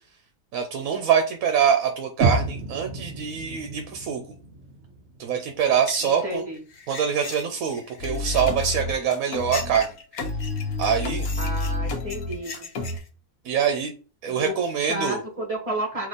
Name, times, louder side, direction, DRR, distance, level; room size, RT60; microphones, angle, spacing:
voice 1, 0.5-4.2 5.2-6.4 6.9-9.9 10.8-11.3 13.4-13.9 14.2-15.2, right 7 dB, 75° right, 5 dB, 1.1 m, -24 dB
sound 1, 2.2-6.2, right 3 dB, 55° right, 1.1 m, -30 dB
sound 2, 5.6-13.1, left 5 dB, 50° left, 0.9 m, -40 dB
voice 2, 6.0-6.6 11.4-12.7 14.3-14.5 14.9-16.1, right 1 dB, 25° right, 0 dB, 1.6 m, -31 dB
sound 3, 8.0-9.8 10.2-13.0, left 2 dB, 80° left, 1.2 m, -29 dB
3.7 x 2.9 x 3.9 m, 0.36 s
omnidirectional pair, 1.5 m